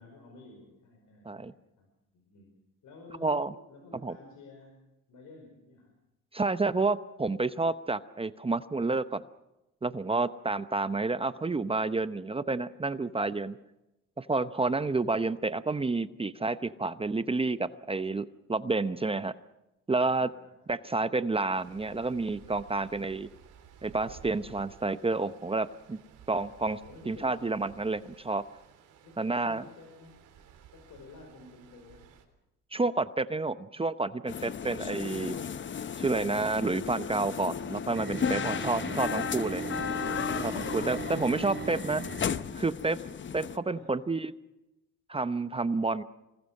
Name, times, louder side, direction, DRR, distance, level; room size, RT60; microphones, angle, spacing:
voice 1, 0.0-2.5 2.8-4.8 5.1-6.0 19.9-21.1 23.0-23.2 26.3-27.5 29.0-30.2 30.7-32.1 43.6-44.0, left 3 dB, 80° left, 3 dB, 5.3 m, -53 dB
voice 2, 6.3-9.2 9.8-13.6 14.2-19.4 19.9-20.3 20.7-23.3 23.8-26.0 26.3-26.8 27.1-28.4 29.2-29.6 32.7-35.4 36.0-39.6 40.4-42.0 42.5-43.0 43.3-44.3 45.1-46.0, right 3 dB, 20° right, 12 dB, 0.8 m, -29 dB
Stream, 21.5-32.3, right 8 dB, 85° right, 3.7 m, -55 dB
sound 1, 34.3-43.6, left 7 dB, 40° left, 0.9 m, -34 dB
sound 2, 37.9-42.6, right 4 dB, 35° right, 5.6 m, -39 dB
26.5 x 20.0 x 6.5 m, 0.95 s
cardioid pair, 90°, 30 cm